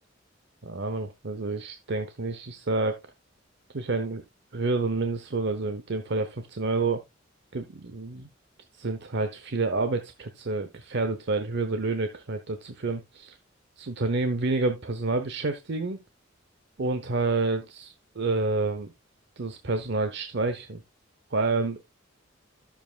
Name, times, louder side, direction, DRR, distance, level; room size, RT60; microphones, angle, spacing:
voice 1, 0.6-3.0 3.7-4.2 4.5-7.0 7.5-8.3 8.7-13.4 13.8-16.0 16.8-18.9 19.4-20.8 21.3-21.8, right 3 dB, 60° right, 0.8 m, -29 dB
13.0 x 7.2 x 2.3 m
head